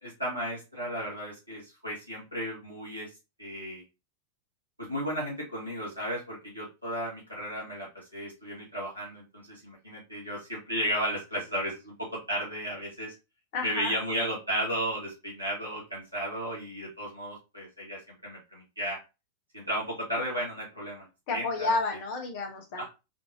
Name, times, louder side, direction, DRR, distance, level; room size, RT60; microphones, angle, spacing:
voice 1, 0.0-3.1 3.4-3.8 4.8-13.1 13.6-19.0 19.5-21.8 22.8-22.9, equal, 85° right, -5 dB, 2.1 m, -34 dB
voice 2, 13.5-13.9 21.3-22.9, left 3 dB, 50° left, 2 dB, 0.9 m, -30 dB
4.3 x 2.7 x 2.9 m, 0.27 s
figure-of-eight pair, 90°, 0 cm